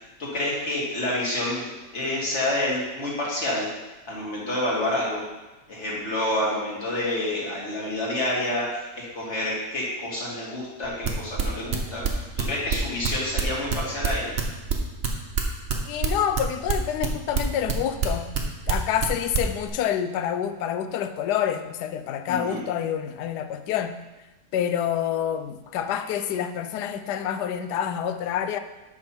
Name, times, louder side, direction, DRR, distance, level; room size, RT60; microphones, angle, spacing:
voice 1, 0.0-3.7 4.1-5.2 5.7-14.4 22.3-22.6, left 1 dB, 45° left, -5 dB, 2.5 m, -28 dB
sound 1, 10.8-14.4 14.7-18.4 18.7-19.1 19.3-19.7, right 7 dB, 50° right, 1.1 m, -25 dB
voice 2, 15.9-18.3 18.7-23.9 24.5-28.6, left 9 dB, 85° left, 10 dB, 1.2 m, -27 dB
8.6 x 6.0 x 4.4 m, 1.1 s
omnidirectional pair, 1.7 m